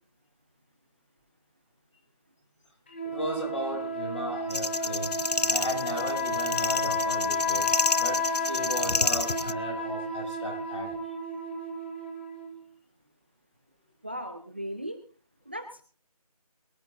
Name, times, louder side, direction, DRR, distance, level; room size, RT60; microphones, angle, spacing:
sound 1, 2.9-12.6, left 2 dB, 15° left, 1.2 m, -31 dB
voice 1, 3.0-11.0, left 1 dB, 50° left, -1 dB, 7.5 m, -36 dB
sound 2, 4.5-9.5, left 3 dB, 85° left, 0.6 m, -29 dB
voice 2, 14.0-15.0 15.5-15.8, equal, 15° right, 8 dB, 0.6 m, -37 dB
23.5 x 12.0 x 2.6 m, 0.41 s
figure-of-eight pair, 165°, 20 cm